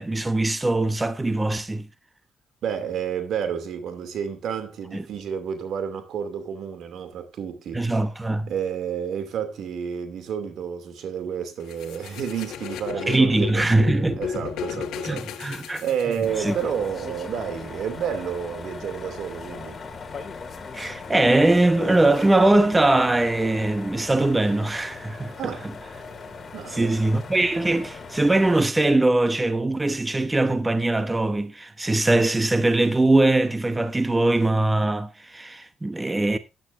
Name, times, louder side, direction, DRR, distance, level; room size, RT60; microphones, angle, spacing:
voice 1, 0.0-1.9 4.9-5.0 7.7-8.5 13.1-14.2 15.1-15.8 16.4-16.5 20.7-25.5 26.7-36.4, right 2 dB, 15° right, 1.0 m, -21 dB
voice 2, 2.6-7.9 8.5-13.7 14.2-19.8 25.4-25.7 26.5-27.1, right 8 dB, 70° right, 2.5 m, -30 dB
sound 1, 11.7-16.6, left 8 dB, 85° left, 1.3 m, -34 dB
sound 2, 16.2-28.6, left 4 dB, 35° left, 2.4 m, -38 dB
14.0 x 10.5 x 2.6 m
cardioid pair, 90°, 0 cm